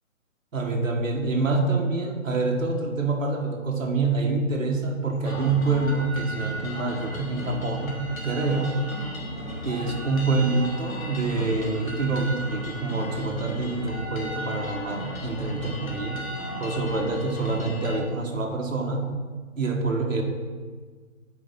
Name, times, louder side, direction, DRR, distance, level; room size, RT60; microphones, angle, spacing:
voice 1, 0.5-8.8 9.6-16.2 16.6-19.1 19.6-20.2, right 3 dB, 70° right, 1 dB, 1.7 m, -26 dB
sound 1, 5.2-18.0, equal, 85° left, 2.0 m, -35 dB
8.9 x 5.0 x 5.5 m, 1.5 s
hypercardioid pair, 175°, 41 cm